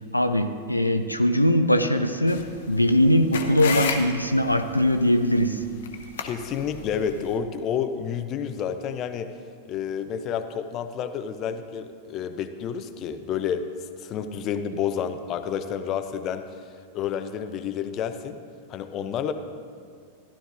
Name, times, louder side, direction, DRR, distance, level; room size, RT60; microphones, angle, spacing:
voice 1, 0.1-5.6, left 1 dB, 85° left, 7 dB, 0.4 m, -21 dB
sound 1, 2.3-7.4, left 6 dB, 60° left, 0.9 m, -34 dB
voice 2, 6.2-9.3 9.7-13.7 14.0-16.5 16.9-18.4 18.7-19.3, left 8 dB, 35° left, 9 dB, 0.6 m, -30 dB
15.0 x 11.5 x 2.6 m, 2.1 s
figure-of-eight pair, 90°, 0 cm